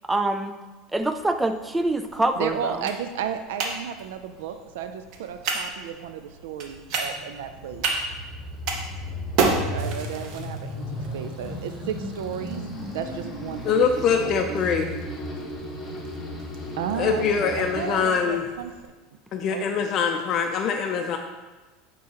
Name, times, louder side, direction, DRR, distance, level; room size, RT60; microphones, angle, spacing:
voice 1, 0.1-0.6 0.9-2.8, right 2 dB, 10° right, 8 dB, 0.4 m, -25 dB
sound 1, 1.0-18.9, right 4 dB, 60° right, 0.9 m, -34 dB
voice 2, 2.4-7.8 9.7-12.6 12.9-13.8 14.2-14.4 16.8-18.7 19.5-19.9, right 8 dB, 85° right, 8 dB, 0.4 m, -33 dB
sound 2, 6.7-17.9, equal, 15° left, 1.3 m, -35 dB
voice 3, 13.6-14.9 16.9-18.4 19.3-21.2, left 6 dB, 45° left, 4 dB, 0.5 m, -23 dB
8.5 x 3.8 x 2.9 m, 1.2 s
supercardioid pair, 125°, 0 cm